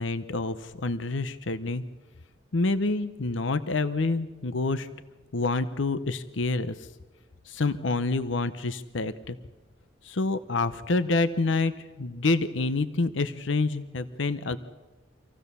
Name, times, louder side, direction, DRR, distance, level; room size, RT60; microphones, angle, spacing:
voice 1, 0.0-1.8 2.5-4.9 5.3-6.9 7.5-9.4 10.0-11.7 12.0-14.6, left 3 dB, 70° left, 12 dB, 0.8 m, -27 dB
26.0 x 16.0 x 6.9 m, 1.2 s
head